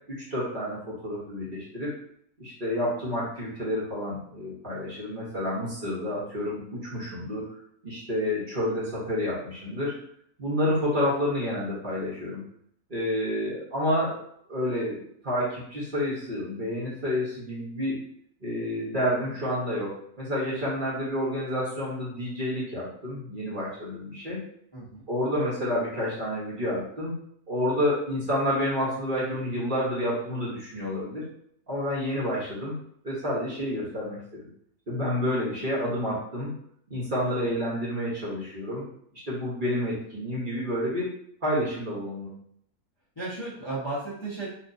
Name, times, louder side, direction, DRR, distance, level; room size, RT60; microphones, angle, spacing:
voice 1, 0.1-1.9 2.4-7.5 7.8-9.9 10.4-12.4 12.9-14.2 14.5-18.0 18.4-24.4 25.1-27.2 27.5-31.2 31.7-32.7 33.0-34.5 34.9-36.5 36.9-38.8 39.3-41.1 41.4-42.3, left 1 dB, 35° right, -7 dB, 1.1 m, -29 dB
voice 2, 24.7-25.0 37.2-37.4 43.2-44.5, right 2 dB, 25° left, -8 dB, 0.7 m, -34 dB
4.2 x 2.5 x 2.6 m, 0.67 s
omnidirectional pair, 1.6 m